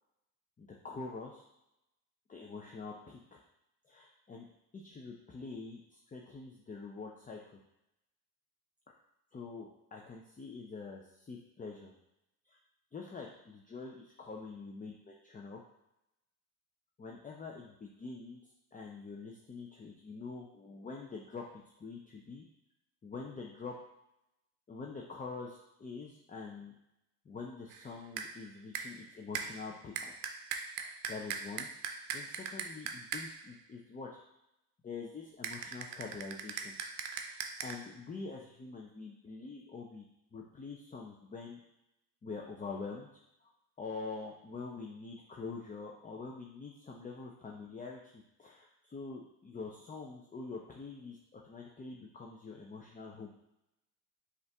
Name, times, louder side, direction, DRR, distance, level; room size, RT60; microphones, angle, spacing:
voice 1, 0.6-1.4 2.3-3.4 3.8-4.5 4.7-7.6 9.3-11.9 12.4-12.6 12.9-15.6 17.0-18.4 18.7-22.4 23.0-23.8 24.7-26.7 27.2-30.1 30.8-31.7 32.1-34.2 34.8-36.7 37.2-40.0 40.3-41.6 42.2-43.1 43.4-43.5 43.8-53.3, left 4 dB, 20° left, -1 dB, 0.6 m, -45 dB
sound 1, 27.7-27.9 28.2-28.4 28.7-29.0 29.3-33.5 35.4-37.7, right 7 dB, 85° right, 0.6 m, -41 dB
5.2 x 2.6 x 3.4 m, 0.86 s
supercardioid pair, 75°, 44 cm